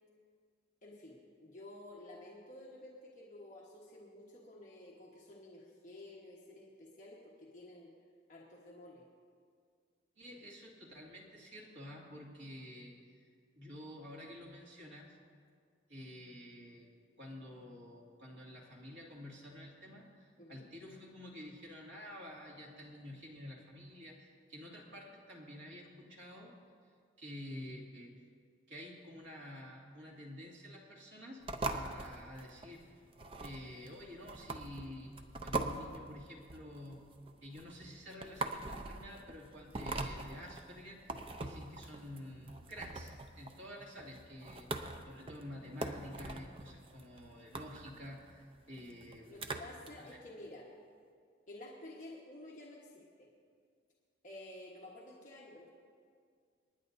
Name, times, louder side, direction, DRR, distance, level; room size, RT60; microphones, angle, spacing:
voice 1, 0.8-7.9 8.3-9.0 20.4-20.7 44.3-44.4 49.2-50.7 51.5-53.3 54.2-55.7, left 1 dB, 40° left, -4 dB, 1.3 m, -52 dB
voice 2, 10.2-13.3 13.6-15.2 15.9-16.9 17.2-26.5 27.2-28.2 28.7-33.0 33.4-35.1 35.4-37.1 37.4-49.4 50.0-50.1, left 1 dB, 75° right, -3 dB, 2.3 m, -50 dB
sound 1, 31.4-49.9, right 3 dB, 30° right, 0.6 m, -43 dB
27.5 x 10.5 x 2.7 m, 2.1 s
head